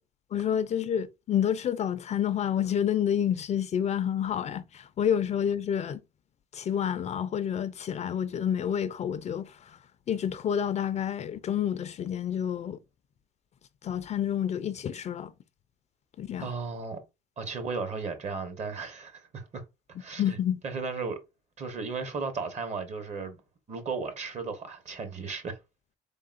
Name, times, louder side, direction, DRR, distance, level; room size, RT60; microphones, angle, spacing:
voice 1, 0.3-6.0 6.5-9.8 10.1-12.8 13.8-15.3 16.2-16.5 20.2-20.6, left 9 dB, 40° left, 0.4 m, -29 dB
voice 2, 16.4-17.0 17.4-19.6 20.0-20.4 20.6-21.2 21.6-23.4 23.7-25.6, right 4 dB, 40° right, 1.0 m, -35 dB
3.7 x 3.7 x 2.5 m
cardioid pair, 110°, 17 cm